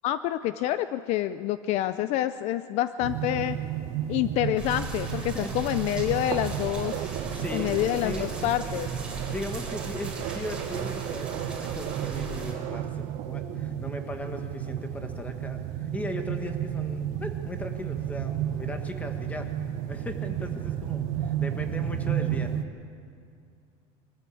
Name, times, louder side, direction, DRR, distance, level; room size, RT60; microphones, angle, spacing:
voice 1, 0.0-3.6 4.1-7.2 7.5-8.9, left 13 dB, 50° left, 13 dB, 0.5 m, -27 dB
sound 1, 3.0-22.6, right 11 dB, 65° right, 1.1 m, -32 dB
sound 2, 4.6-12.5, right 2 dB, 5° right, 3.6 m, -38 dB
voice 2, 5.2-5.6 7.0-8.4 9.3-19.5 19.9-22.6, left 1 dB, 10° left, 5 dB, 1.5 m, -38 dB
23.0 x 14.0 x 8.5 m, 2.3 s
cardioid pair, 160°, 14 cm